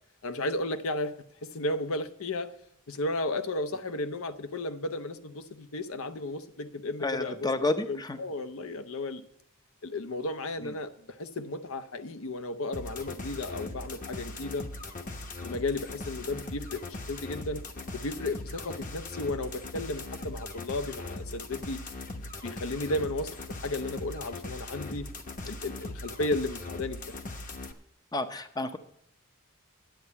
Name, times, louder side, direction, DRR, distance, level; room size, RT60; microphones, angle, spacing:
voice 1, 0.2-1.1 1.4-2.5 2.9-7.5 7.9-9.2 9.8-14.7 15.4-16.8 17.1-17.6 17.9-21.8 22.2-23.3 23.6-25.1 25.5-27.0, left 2 dB, 75° left, 10 dB, 0.8 m, -34 dB
voice 2, 7.0-8.2 10.6-10.7 28.1-28.8, left 2 dB, 20° left, 9 dB, 0.6 m, -30 dB
sound 1, 12.7-27.7, left 2 dB, 40° left, 1.0 m, -40 dB
10.5 x 8.5 x 6.8 m, 0.74 s
head